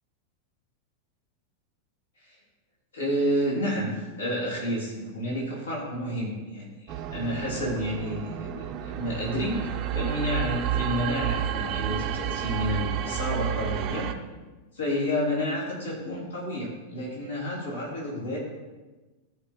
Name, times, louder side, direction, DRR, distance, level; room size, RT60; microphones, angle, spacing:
voice 1, 2.9-6.7 7.1-14.1 14.7-18.4, equal, 70° left, -5 dB, 3.4 m, -30 dB
sound 1, 6.9-14.1, right 10 dB, 40° right, 0.7 m, -30 dB
14.5 x 5.3 x 4.4 m, 1.2 s
figure-of-eight pair, 90°, 0 cm